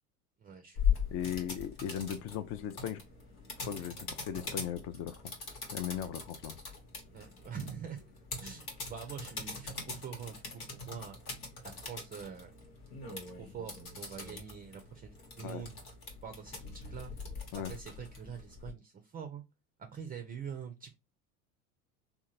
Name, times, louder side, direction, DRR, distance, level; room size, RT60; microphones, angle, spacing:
voice 1, 0.4-1.0 7.1-8.0 8.4-11.2 11.6-12.5 13.1-15.7 16.2-17.1 17.5-19.4 19.8-20.9, right 7 dB, 20° right, 0.4 m, -45 dB
sound 1, 0.7-18.7, left 6 dB, 85° left, 1.2 m, -40 dB
voice 2, 1.1-3.0 3.6-5.3 5.7-6.5 15.4-15.6 17.5-17.7, left 9 dB, 35° left, 0.4 m, -38 dB
3.6 x 2.2 x 2.8 m
hypercardioid pair, 80°, 43 cm